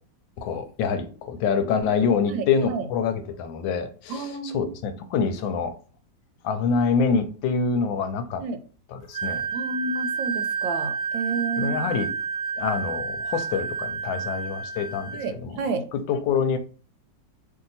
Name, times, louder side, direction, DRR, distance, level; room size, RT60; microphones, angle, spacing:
voice 1, 0.4-5.7 6.4-8.4 9.1-9.5 11.6-12.1 12.6-15.1 15.4-15.6 15.9-16.6, left 5 dB, 85° left, 1.3 m, -25 dB
voice 2, 2.3-2.9 4.1-4.7 8.4-8.6 9.5-11.8 15.1-15.9, right 3 dB, 85° right, 1.3 m, -31 dB
Wind instrument woodwind instrument, 9.1-15.3, right 5 dB, 60° right, 1.0 m, -30 dB
3.1 x 2.7 x 3.9 m
omnidirectional pair, 2.0 m